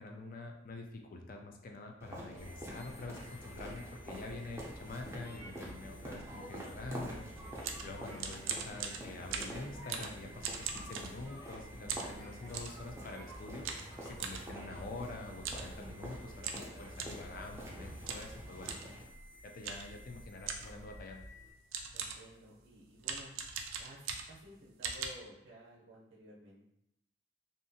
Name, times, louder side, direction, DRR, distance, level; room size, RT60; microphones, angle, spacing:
voice 1, 0.0-7.3 7.8-13.7 14.0-18.8 19.4-21.3, left 2 dB, 45° left, 2 dB, 0.4 m, -46 dB
sound 1, 2.0-19.0, equal, 15° right, 0.5 m, -47 dB
sound 2, 2.4-21.5, equal, 70° left, 1.1 m, -54 dB
sound 3, 7.4-11.5 11.9-12.8 13.6-14.4 15.4-15.7 16.0-16.1 16.4-17.3 18.1-18.3 18.6-18.9 19.6-20.0 20.5-20.8 21.4-21.5 21.7-22.3 23.0-24.5 24.8-25.1, right 6 dB, 90° right, 0.4 m, -40 dB
voice 2, 21.9-23.3 23.8-26.6, equal, 55° right, -5 dB, 0.7 m, -54 dB
2.7 x 2.4 x 2.6 m, 0.82 s
head